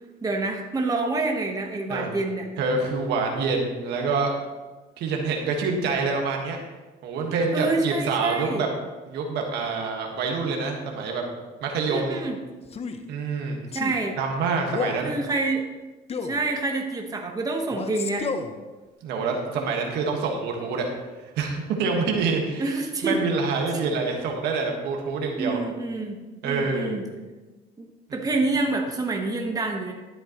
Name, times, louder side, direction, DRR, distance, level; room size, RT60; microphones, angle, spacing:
voice 1, 0.2-2.5 7.5-8.7 11.9-12.4 13.7-14.2 15.0-15.7 16.2-18.3 22.6-23.2 25.4-26.2 26.4-27.0 27.8-29.9, right 3 dB, 20° right, 2 dB, 1.3 m, -27 dB
voice 2, 2.6-4.3 5.0-6.6 7.0-8.7 9.1-11.2 11.6-12.2 13.1-13.6 14.2-15.2 19.0-20.9 21.3-22.7 23.0-25.6 26.4-27.0, right 4 dB, 80° right, 1 dB, 1.6 m, -26 dB
Male speech man speaking, 12.7-13.0 13.7-14.0 14.7-15.1 16.1-16.4 17.7-18.5, left 4 dB, 35° left, 0.8 m, -31 dB
12.5 x 7.9 x 3.1 m, 1.2 s
cardioid pair, 110°, 17 cm